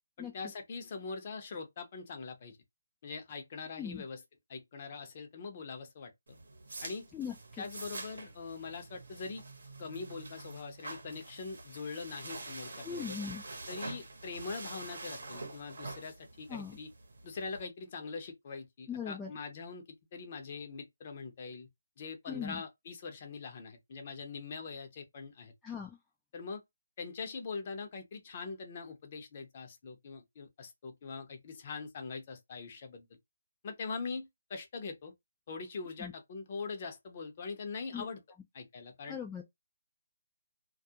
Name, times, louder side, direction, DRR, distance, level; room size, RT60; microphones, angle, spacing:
voice 1, 0.2-2.6 3.0-4.2 4.5-6.4 6.8-7.1 7.6-9.4 9.8-13.2 13.7-16.9 17.2-19.8 20.1-21.7 22.0-25.5 26.3-26.6 27.0-33.1 33.6-35.1 35.5-38.2 38.5-39.2, left 4 dB, 35° left, 0.7 m, -42 dB
sound 1, 6.3-17.6, right 2 dB, 65° right, 0.8 m, -46 dB
voice 2, 7.1-7.6 12.8-13.4 16.5-16.8 18.9-19.3 22.3-22.6 25.6-26.0 36.0-36.1 37.9-38.1 39.1-39.4, left 7 dB, 10° left, 0.3 m, -39 dB
2.3 x 2.1 x 2.7 m
figure-of-eight pair, 160°, 0 cm